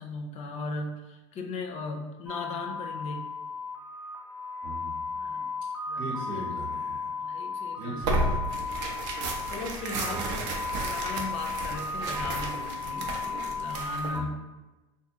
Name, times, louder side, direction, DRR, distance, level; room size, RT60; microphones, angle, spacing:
voice 1, 0.0-3.3 5.2-5.5 5.9-6.6 7.2-8.2 9.5-10.5 10.8-14.3, left 3 dB, 40° left, 4 dB, 0.4 m, -38 dB
sound 1, 2.3-14.2, left 4 dB, 5° right, 0.9 m, -35 dB
voice 2, 4.6-5.0 6.0-7.1 7.7-8.7 10.0-10.3 14.1-14.3, right 1 dB, 85° right, -5 dB, 1.3 m, -39 dB
Tearing, 8.0-14.2, right 2 dB, 65° right, 0.6 m, -33 dB
2.5 x 2.4 x 2.7 m, 1.1 s
supercardioid pair, 110°, 17 cm